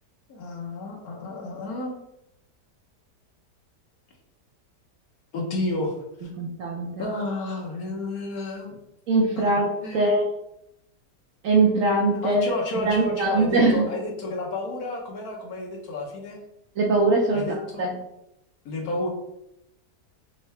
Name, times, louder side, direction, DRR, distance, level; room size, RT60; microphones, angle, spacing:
voice 1, 0.3-1.9 5.3-5.9 7.0-8.8 9.3-10.1 12.2-16.4 17.3-17.9 18.6-19.1, left 2 dB, 65° left, 0 dB, 1.3 m, -31 dB
voice 2, 6.4-7.0 9.1-10.2 11.4-12.4 12.8-13.9 16.8-17.5 17.8-17.9, right 2 dB, 65° right, 0 dB, 0.9 m, -21 dB
3.7 x 3.3 x 3.2 m, 0.82 s
omnidirectional pair, 1.8 m